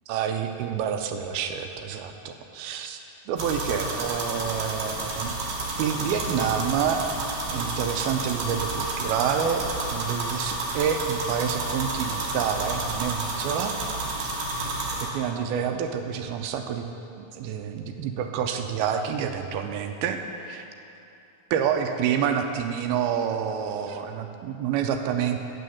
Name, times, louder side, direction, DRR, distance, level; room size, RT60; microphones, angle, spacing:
voice 1, 0.1-3.0 3.3-5.3 5.8-7.1 7.5-13.8 15.0-16.8 17.2-20.7 21.5-25.5, right 8 dB, 80° right, 5 dB, 2.3 m, -28 dB
sound 1, 3.4-15.0, right 2 dB, 60° right, 2.5 m, -30 dB
9.3 x 6.3 x 7.0 m, 2.8 s
omnidirectional pair, 4.6 m